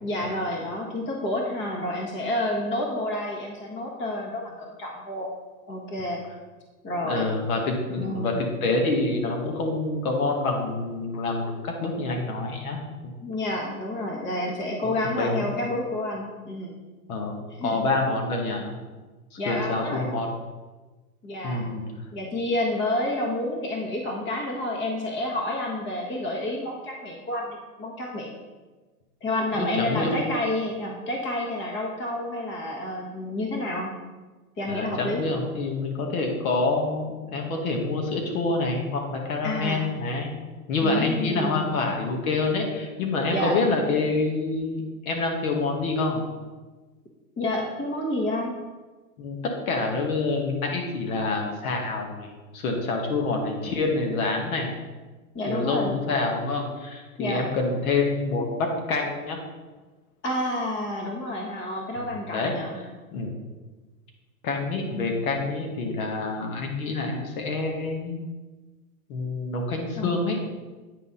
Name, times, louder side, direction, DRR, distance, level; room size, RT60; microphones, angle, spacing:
voice 1, 0.0-5.3 5.7-6.2 6.8-7.3 8.0-8.5 13.2-16.7 17.6-17.9 19.4-20.1 21.2-21.7 22.1-28.4 29.2-33.9 34.6-35.2 39.4-39.9 40.8-41.9 43.3-43.6 47.4-48.5 55.3-55.9 57.2-57.4 60.2-62.8 64.9-65.1 70.0-70.2, left 1 dB, 25° left, 0 dB, 1.4 m, -29 dB
voice 2, 7.0-12.8 13.0-13.1 15.0-15.5 17.1-18.8 19.3-20.3 21.4-21.8 29.6-30.2 34.7-40.3 40.7-46.2 49.2-54.7 55.5-59.4 62.0-63.3 64.4-68.2 69.1-70.4, left 3 dB, 65° left, 1 dB, 1.4 m, -27 dB
9.0 x 4.1 x 3.7 m, 1.3 s
hypercardioid pair, 120°, 45 cm